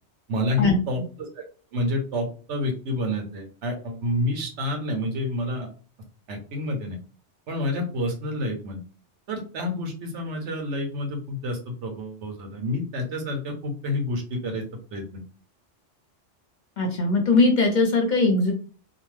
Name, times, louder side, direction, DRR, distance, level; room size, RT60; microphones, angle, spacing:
voice 1, 0.3-1.4 1.7-5.7 6.3-7.0 7.5-8.8 9.3-14.6 14.9-15.2, left 1 dB, 75° right, 3 dB, 1.1 m, -29 dB
voice 2, 16.8-18.5, left 3 dB, 45° left, 2 dB, 0.7 m, -20 dB
2.6 x 2.2 x 3.1 m, 0.38 s
omnidirectional pair, 1.2 m